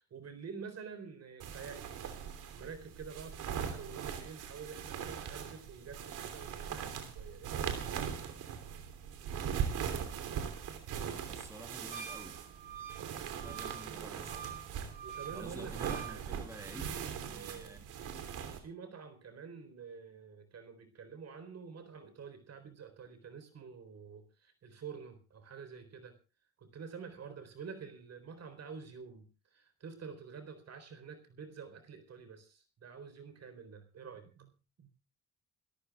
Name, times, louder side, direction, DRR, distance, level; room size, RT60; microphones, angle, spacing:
voice 1, 0.0-1.8 2.5-7.7 15.0-17.8 18.6-26.2 26.6-34.9, right 6 dB, 55° right, 9 dB, 4.0 m, -48 dB
sound 1, 1.4-18.6, right 8 dB, 85° right, 3.1 m, -40 dB
voice 2, 11.2-12.4 13.1-14.5 15.3-17.0 17.2-17.8, right 1 dB, 10° right, 6 dB, 3.1 m, -50 dB
Wind instrument woodwind instrument, 11.9-16.2, right 8 dB, 25° right, 2.0 m, -46 dB
29.0 x 13.5 x 2.4 m, 0.32 s
cardioid pair, 90°, 30 cm